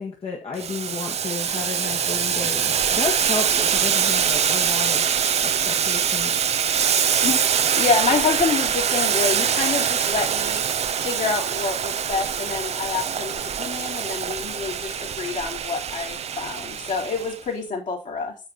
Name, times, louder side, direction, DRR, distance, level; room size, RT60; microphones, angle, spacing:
voice 1, 0.0-5.1 5.4-6.5, left 4 dB, 40° left, -1 dB, 1.9 m, -32 dB
Boiling, 0.6-17.4, right 8 dB, 45° right, 0.8 m, -24 dB
voice 2, 7.2-10.6 11.0-18.3, left 5 dB, 55° left, -1 dB, 4.0 m, -27 dB
7.5 x 6.4 x 4.3 m, 0.31 s
hypercardioid pair, 50°, 15 cm